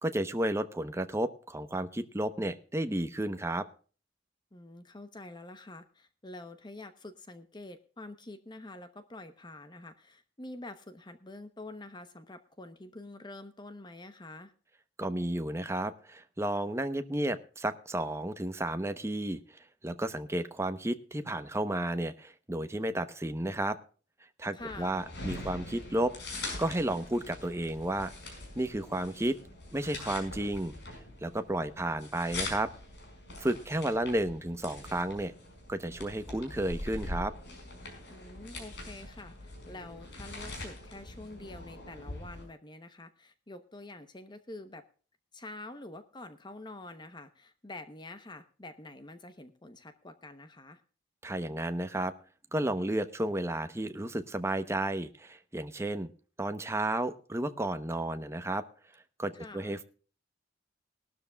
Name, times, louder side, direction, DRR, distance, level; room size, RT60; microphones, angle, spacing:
voice 1, 0.0-3.7 15.0-23.8 24.4-26.1 26.6-28.1 28.6-29.4 29.7-30.7 31.2-32.7 33.4-35.3 35.7-37.3 51.2-52.1 52.5-56.1 56.4-58.6 59.2-59.8, right 1 dB, 15° right, 9 dB, 0.9 m, -32 dB
voice 2, 4.5-14.5 24.5-25.0 38.1-44.8 45.3-50.8 59.3-59.8, left 2 dB, 25° left, 10 dB, 0.9 m, -47 dB
sound 1, 24.6-42.4, left 2 dB, 65° left, 5.3 m, -43 dB
19.5 x 12.5 x 2.3 m, 0.39 s
head